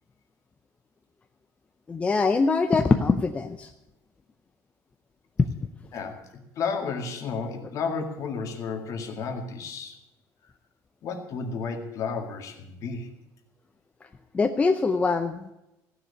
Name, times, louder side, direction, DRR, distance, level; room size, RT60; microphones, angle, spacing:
voice 1, 1.9-3.7 14.3-15.5, left 4 dB, 20° left, 7 dB, 0.6 m, -23 dB
voice 2, 6.6-10.0 11.0-13.1, left 5 dB, 50° left, 5 dB, 2.1 m, -32 dB
15.0 x 6.9 x 9.7 m, 0.91 s
cardioid pair, 145°, 7 cm